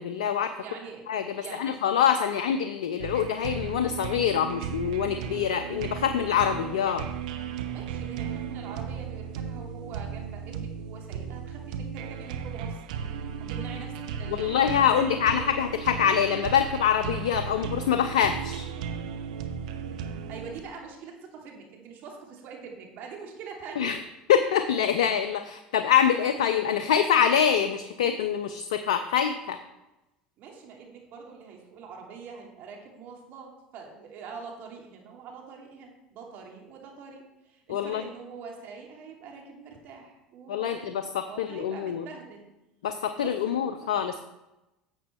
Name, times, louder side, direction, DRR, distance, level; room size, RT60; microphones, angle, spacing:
voice 1, 0.0-0.5 1.1-7.1 14.3-18.7 23.8-24.0 24.3-29.6 37.7-38.0 40.5-41.0 41.4-42.0 42.8-44.2, left 8 dB, 85° left, 9 dB, 0.6 m, -25 dB
voice 2, 0.6-1.0 1.3-1.8 7.7-12.8 13.4-15.4 20.3-23.9 30.4-42.5 43.2-44.0, right 5 dB, 60° right, 0 dB, 2.8 m, -44 dB
sound 1, 3.0-20.6, right 7 dB, 80° right, 0.9 m, -35 dB
11.0 x 7.7 x 4.5 m, 0.97 s
hypercardioid pair, 85°, 4 cm